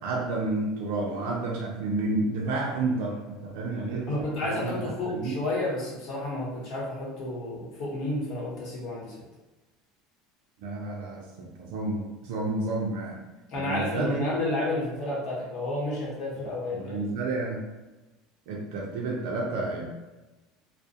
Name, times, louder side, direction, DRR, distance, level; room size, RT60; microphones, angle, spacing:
voice 1, 0.0-4.1 4.4-5.4 10.6-13.2 13.5-14.2 16.4-16.5 16.7-17.6 18.5-19.9, right 2 dB, 75° right, -2 dB, 0.4 m, -30 dB
voice 2, 4.1-9.2 13.5-17.0, left 2 dB, 55° left, -4 dB, 1.0 m, -31 dB
2.3 x 2.0 x 2.7 m, 1.1 s
supercardioid pair, 125°, 0 cm